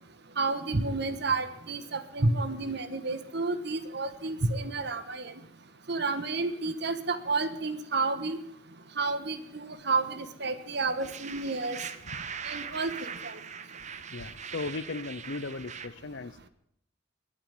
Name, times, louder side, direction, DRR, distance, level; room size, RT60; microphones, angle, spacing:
voice 1, 0.4-5.3 5.9-8.4 9.0-11.8 12.4-13.4, right 3 dB, 55° right, 11 dB, 1.3 m, -30 dB
sound 1, 11.0-15.9, right 6 dB, 35° right, 1.0 m, -41 dB
voice 2, 14.1-16.5, left 3 dB, 60° left, 15 dB, 0.7 m, -37 dB
22.0 x 8.8 x 7.2 m, 0.73 s
head